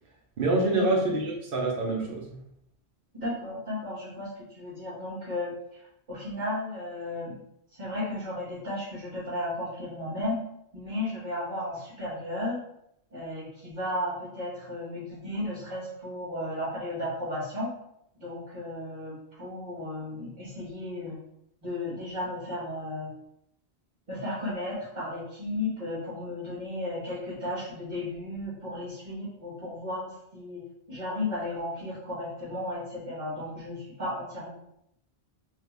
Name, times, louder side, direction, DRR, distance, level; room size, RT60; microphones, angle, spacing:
voice 1, 0.4-2.4, right 2 dB, 60° right, -1 dB, 0.9 m, -26 dB
voice 2, 3.1-5.8 6.1-7.3 7.7-10.4 10.7-12.6 13.1-17.7 18.2-21.2 21.6-23.1 24.1-30.6 30.9-34.5, left 1 dB, 45° right, -8 dB, 1.6 m, -34 dB
3.3 x 2.4 x 3.2 m, 0.76 s
omnidirectional pair, 1.1 m